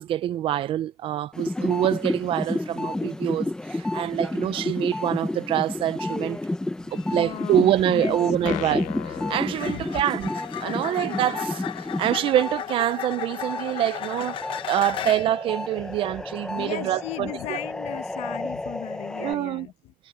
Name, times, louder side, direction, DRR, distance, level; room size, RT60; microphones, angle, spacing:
voice 1, 0.0-6.4 6.9-10.3 10.6-11.6 12.0-14.4 14.7-17.6 19.2-19.7, right 12 dB, 40° right, 0.5 m, -25 dB
sound 1, 1.3-12.6 13.0-19.3, left 2 dB, 5° left, 0.6 m, -31 dB
sound 2, 6.9-7.1 9.5-15.4 19.1-19.3, left 11 dB, 40° left, 0.8 m, -35 dB
voice 2, 7.2-8.7 9.7-9.9 11.8-12.0 14.9-15.1 15.9-16.0 16.5-19.9, left 14 dB, 55° left, 1.2 m, -37 dB
sound 3, 8.4-10.4, left 20 dB, 70° left, 0.6 m, -37 dB
cardioid pair, 180°, 13 cm